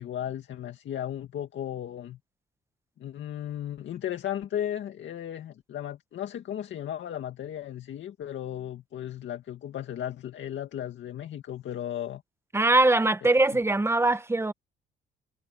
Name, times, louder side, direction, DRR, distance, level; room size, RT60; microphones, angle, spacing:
voice 1, 0.0-2.2 3.0-12.2 13.5-13.6, left 10 dB, 70° left, 2.1 m, -35 dB
voice 2, 12.5-14.5, right 2 dB, 15° right, 1.1 m, -22 dB
cardioid pair, 90°, 20 cm